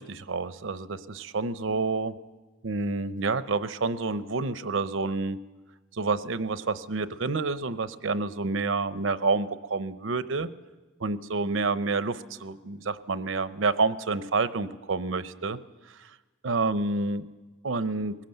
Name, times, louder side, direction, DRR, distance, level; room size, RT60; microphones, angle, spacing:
voice 1, 0.0-2.2 2.6-5.4 5.9-10.5 11.0-15.6 16.0-16.1 16.4-17.2 17.6-18.2, right 3 dB, 90° right, 13 dB, 0.8 m, -28 dB
21.0 x 17.5 x 7.9 m, 1.2 s
head